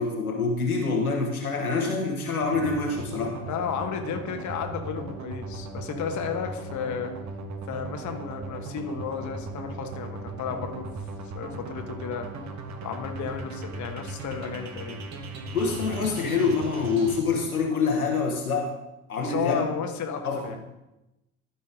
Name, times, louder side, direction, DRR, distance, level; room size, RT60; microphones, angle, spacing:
voice 1, 0.0-3.4 15.5-18.7 19.1-19.6 20.2-20.4, left 4 dB, 85° left, 0 dB, 1.4 m, -26 dB
sound 1, 2.4-17.2, right 3 dB, 40° right, 1.3 m, -37 dB
voice 2, 3.5-7.1 7.7-10.9 11.3-12.3 12.8-15.0 19.2-20.6, left 7 dB, 40° left, 5 dB, 1.2 m, -33 dB
13.0 x 5.6 x 3.9 m, 0.95 s
figure-of-eight pair, 55°, 43 cm